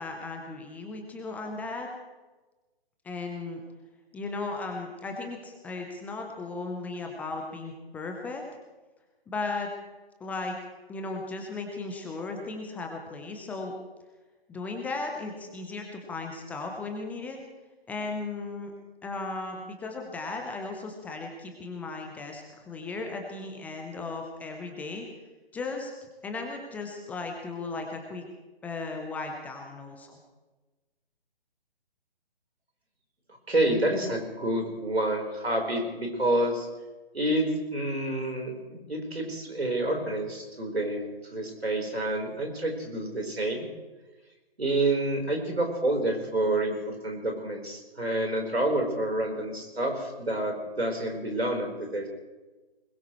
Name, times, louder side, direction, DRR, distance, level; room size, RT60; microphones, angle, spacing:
voice 1, 0.0-1.9 3.0-3.6 4.1-8.4 9.3-9.7 10.2-10.6 10.9-13.7 14.5-17.4 17.9-18.7 19.0-25.1 25.5-25.9 26.2-28.3 28.6-30.2, left 3 dB, 5° left, 2 dB, 0.8 m, -36 dB
voice 2, 33.5-36.7 37.1-43.6 44.6-52.1, right 1 dB, 85° right, 2 dB, 4.4 m, -28 dB
21.5 x 21.0 x 3.2 m, 1.2 s
figure-of-eight pair, 140°, 30 cm